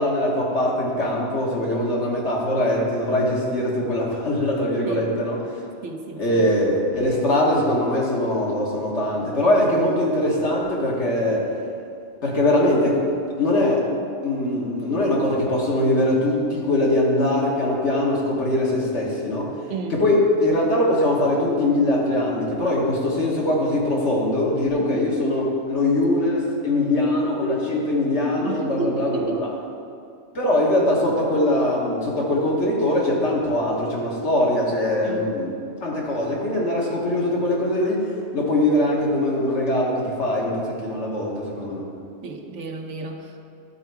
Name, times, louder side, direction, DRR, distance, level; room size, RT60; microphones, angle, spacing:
voice 1, 0.0-5.4 6.2-11.5 12.2-13.0 13.4-13.9 14.2-19.5 19.9-29.5 30.4-35.5 35.8-38.0 38.3-41.8, left 1 dB, 65° left, -3 dB, 1.7 m, -22 dB
voice 2, 4.9-5.2 5.8-6.5 19.7-20.0 24.7-25.0 28.4-29.4 35.0-35.3 42.2-43.4, right 4 dB, 75° right, 3 dB, 1.1 m, -32 dB
11.5 x 4.4 x 4.7 m, 2.4 s
omnidirectional pair, 1.3 m